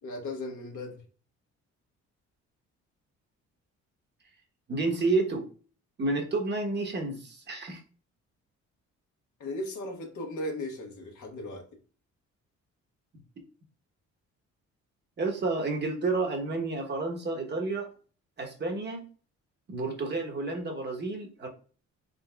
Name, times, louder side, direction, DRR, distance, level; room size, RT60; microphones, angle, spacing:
voice 1, 0.0-1.0 9.4-11.6, left 1 dB, 75° left, 1 dB, 1.2 m, -36 dB
voice 2, 4.7-5.5 6.0-7.8 15.2-17.9 18.4-19.0 19.7-21.5, right 3 dB, 35° right, 2 dB, 1.0 m, -30 dB
3.8 x 3.6 x 2.2 m, 0.39 s
cardioid pair, 90°, 30 cm